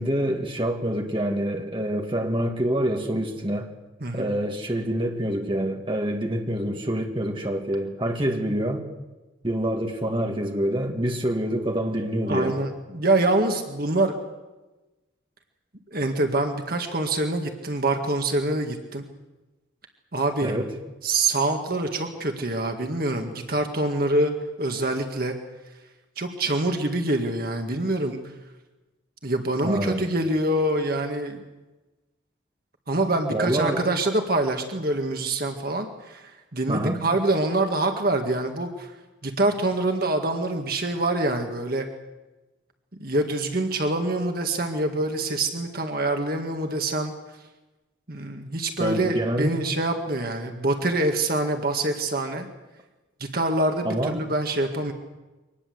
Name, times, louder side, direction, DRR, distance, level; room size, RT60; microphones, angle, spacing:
voice 1, 0.0-3.7 4.1-8.9 9.4-12.6 20.4-20.7 29.6-30.1 33.3-33.8 36.7-37.0 48.8-49.6 53.8-54.2, right 1 dB, 25° right, 2 dB, 2.2 m, -26 dB
voice 2, 4.0-4.3 12.3-14.1 15.9-19.0 20.1-20.6 21.0-24.3 24.6-25.4 26.2-28.2 29.2-31.4 32.9-38.9 39.2-41.9 43.0-47.1 48.1-52.5 53.3-54.9, right 2 dB, 50° right, 4 dB, 2.0 m, -25 dB
24.0 x 19.5 x 8.0 m, 1.1 s
head